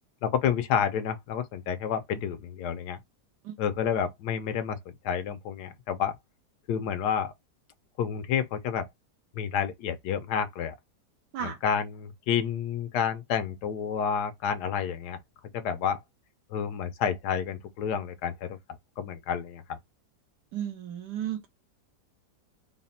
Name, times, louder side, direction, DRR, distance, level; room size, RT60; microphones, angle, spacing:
voice 1, 0.2-3.0 3.6-4.8 5.0-6.2 6.7-7.3 8.0-8.9 9.4-10.7 11.4-15.2 15.5-16.0 16.5-18.6 19.0-19.8, left 8 dB, 90° left, 1.3 m, -29 dB
voice 2, 20.5-21.5, right 10 dB, 85° right, 1.5 m, -34 dB
4.1 x 2.1 x 4.0 m
omnidirectional pair, 1.8 m